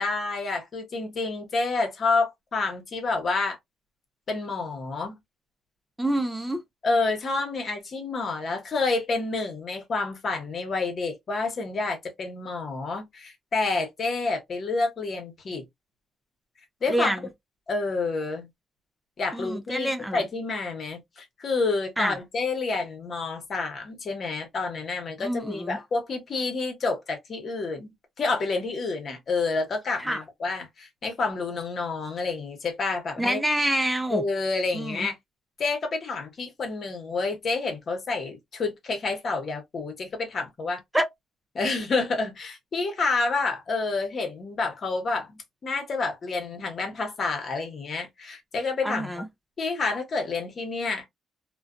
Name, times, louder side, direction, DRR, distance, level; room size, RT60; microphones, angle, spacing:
voice 1, 0.0-3.6 4.3-5.1 6.8-15.6 16.8-17.1 17.7-18.5 19.2-33.4 34.1-35.2 35.6-40.8 41.5-49.1 49.6-51.1, left 3 dB, 50° left, 1.1 m, -29 dB
voice 2, 6.0-6.6 16.9-17.2 19.3-20.3 22.0-22.2 25.2-25.8 29.9-30.2 33.2-34.2 34.7-35.1 40.9-41.1 48.8-49.3, right 1 dB, 5° right, 0.5 m, -27 dB
2.4 x 2.2 x 2.4 m
cardioid pair, 90°, 0 cm